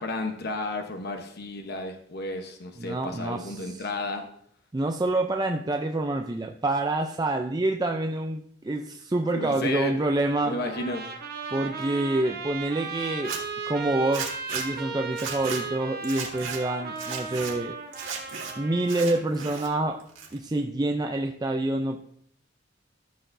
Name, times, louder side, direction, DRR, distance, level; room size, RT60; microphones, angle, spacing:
voice 1, 0.0-4.3 9.3-9.9 10.4-11.0, left 2 dB, 55° left, 4 dB, 1.0 m, -32 dB
voice 2, 2.8-3.8 4.7-10.6 11.5-13.4 13.7-18.1 18.6-20.0 20.3-22.0, right 2 dB, 20° right, 4 dB, 0.4 m, -27 dB
Trumpet, 10.6-19.3, right 5 dB, 50° right, 1.0 m, -36 dB
Zipper (clothing), 13.1-13.4 14.1-14.7 15.1-15.6 16.0-16.6 17.0-17.5 17.9-18.5 18.8-19.7 20.0-20.6, right 6 dB, 80° right, 1.9 m, -35 dB
14.0 x 6.7 x 2.6 m, 0.64 s
head